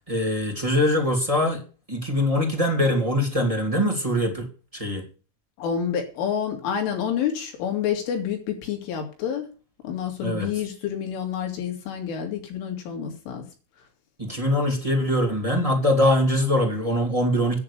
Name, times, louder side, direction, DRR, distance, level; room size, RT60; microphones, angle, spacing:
voice 1, 0.1-1.6 1.9-4.5 4.7-5.0 10.2-10.5 14.2-17.6, left 1 dB, 15° right, 2 dB, 1.4 m, -22 dB
voice 2, 5.6-9.5 9.8-13.5, left 8 dB, 80° left, 3 dB, 5.4 m, -28 dB
10.5 x 9.3 x 6.9 m, 0.35 s
omnidirectional pair, 5.6 m